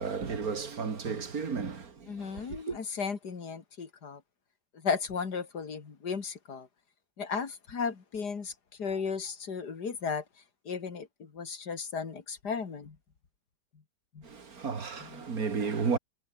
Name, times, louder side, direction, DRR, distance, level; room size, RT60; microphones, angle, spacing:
voice 1, 0.0-1.9 2.5-2.8 14.2-16.0, right 5 dB, 55° right, 2.7 m, -33 dB
voice 2, 2.1-4.2 4.7-6.7 7.2-10.2 10.6-13.0 14.1-14.3 15.0-15.2, left 5 dB, 65° left, 2.9 m, -35 dB
omnidirectional pair, 1.9 m